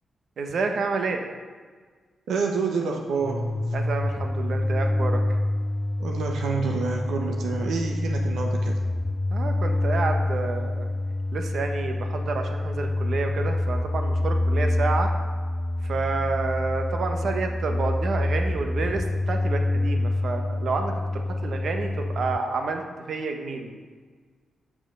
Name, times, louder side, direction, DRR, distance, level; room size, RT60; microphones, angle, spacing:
voice 1, 0.4-1.2 3.7-5.2 9.3-10.9 11.3-15.1 15.8-22.8 23.1-23.7, right 4 dB, 65° right, 4 dB, 1.0 m, -29 dB
voice 2, 2.3-3.5 6.0-8.8, right 4 dB, 90° right, 2 dB, 0.8 m, -28 dB
sound 1, 3.2-22.4, left 1 dB, 10° left, 0.3 m, -26 dB
7.5 x 6.3 x 6.5 m, 1.6 s
cardioid pair, 90°, 0 cm